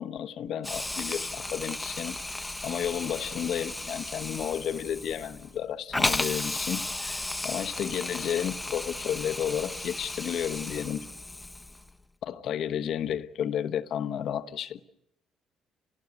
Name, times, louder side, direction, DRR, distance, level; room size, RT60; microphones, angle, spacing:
voice 1, 0.0-2.2 2.6-11.1 12.2-14.8, left 9 dB, 65° left, 1.0 m, -32 dB
Hiss, 0.6-11.9, left 2 dB, 10° left, 1.0 m, -34 dB
29.5 x 17.5 x 8.1 m
supercardioid pair, 75°, 0 cm